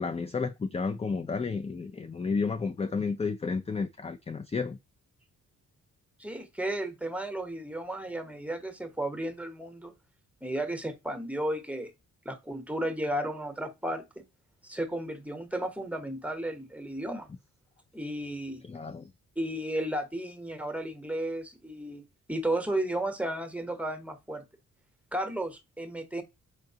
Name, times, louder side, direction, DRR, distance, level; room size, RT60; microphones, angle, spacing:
voice 1, 0.0-4.8 18.6-19.1, left 4 dB, 20° left, 0.4 m, -31 dB
voice 2, 6.2-9.9 10.4-11.9 12.2-14.1 14.6-17.3 17.9-18.6 19.4-22.0 22.3-24.5 25.1-26.2, right 1 dB, 5° right, 0.9 m, -33 dB
4.5 x 3.8 x 2.8 m
cardioid pair, 70°, 34 cm